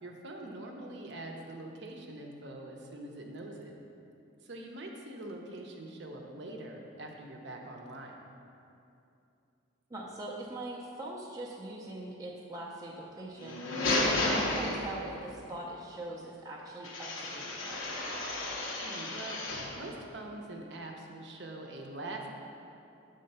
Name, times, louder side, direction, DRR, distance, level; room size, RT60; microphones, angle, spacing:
voice 1, 0.0-3.8 4.4-8.2 13.7-14.1 18.8-19.4 19.8-22.3, right 2 dB, 55° right, 1 dB, 0.7 m, -44 dB
voice 2, 9.9-13.6 14.3-17.8, right 1 dB, 15° right, -4 dB, 0.5 m, -42 dB
sound 1, 13.4-15.3 16.8-19.8, left 2 dB, 75° left, 0.9 m, -32 dB
7.7 x 3.7 x 5.4 m, 2.7 s
head